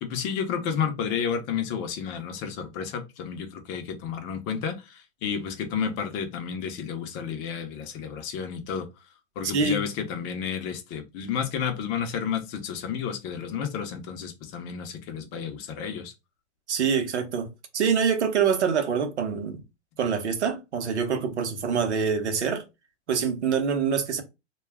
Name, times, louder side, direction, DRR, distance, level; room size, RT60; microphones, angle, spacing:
voice 1, 0.0-8.9 9.4-16.1, left 7 dB, 35° left, 0.7 m, -31 dB
voice 2, 16.7-17.5 17.7-19.6 20.0-22.6 23.1-24.2, right 6 dB, 85° right, 0.8 m, -25 dB
2.3 x 2.2 x 3.3 m
hypercardioid pair, 120°, 33 cm